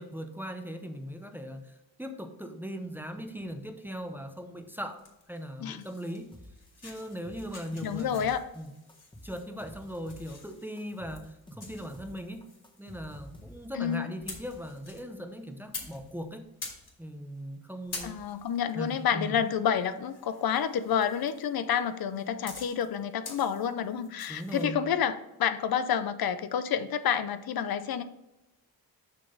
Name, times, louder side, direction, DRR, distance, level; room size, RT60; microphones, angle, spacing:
voice 1, 0.0-5.0 5.3-6.3 6.8-8.7 9.2-12.4 12.8-16.5 17.0-18.2 18.7-19.4 24.3-24.8, equal, 5° right, 6 dB, 0.6 m, -39 dB
sound 1, 5.0-24.6, left 3 dB, 45° left, 2.6 m, -48 dB
sound 2, 6.3-6.7 7.0-8.6 8.9-10.5 10.8-13.9, left 1 dB, 15° left, 1.3 m, -50 dB
voice 2, 7.8-8.4 13.7-14.1 18.0-28.0, left 8 dB, 70° left, 12 dB, 0.6 m, -29 dB
6.6 x 6.0 x 3.8 m, 0.93 s
wide cardioid pair, 125°, 37 cm